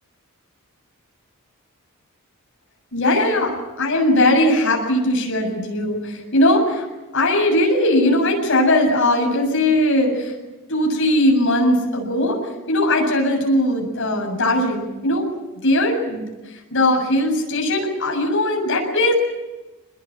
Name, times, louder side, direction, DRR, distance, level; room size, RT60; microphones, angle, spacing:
voice 1, 2.9-6.8 7.1-10.3 10.7-12.4 12.7-15.2 15.6-16.2 16.7-19.1, left 1 dB, 60° left, 1 dB, 7.5 m, -19 dB
26.0 x 21.0 x 9.0 m, 1.1 s
head